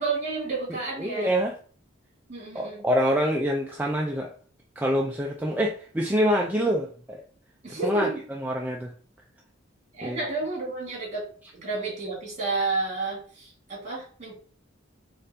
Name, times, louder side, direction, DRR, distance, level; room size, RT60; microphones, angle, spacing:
voice 1, 0.0-1.3 2.3-2.8 7.6-8.2 9.9-11.3 11.5-14.3, right 3 dB, 40° right, -3 dB, 1.8 m, -31 dB
voice 2, 0.7-1.5 2.5-4.3 4.8-7.2 7.7-8.9 10.0-10.2, equal, 10° right, -1 dB, 0.3 m, -26 dB
4.3 x 2.5 x 2.6 m, 0.42 s
head